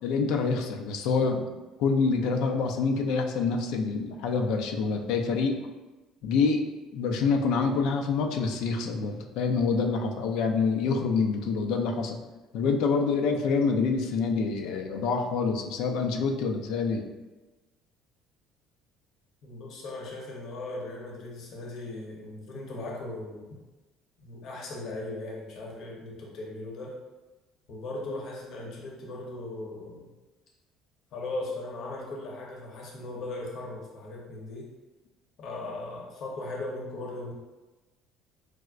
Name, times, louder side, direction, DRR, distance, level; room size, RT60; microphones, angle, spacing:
voice 1, 0.0-1.5 1.8-5.6 6.2-6.7 6.9-12.2 12.5-17.1, left 4 dB, 75° left, 3 dB, 0.4 m, -26 dB
voice 2, 19.4-23.4 24.2-27.0 27.7-30.1 31.1-34.7 35.4-37.3, left 2 dB, 60° left, -2 dB, 0.8 m, -38 dB
4.6 x 2.0 x 2.4 m, 1.1 s
supercardioid pair, 95°, 0 cm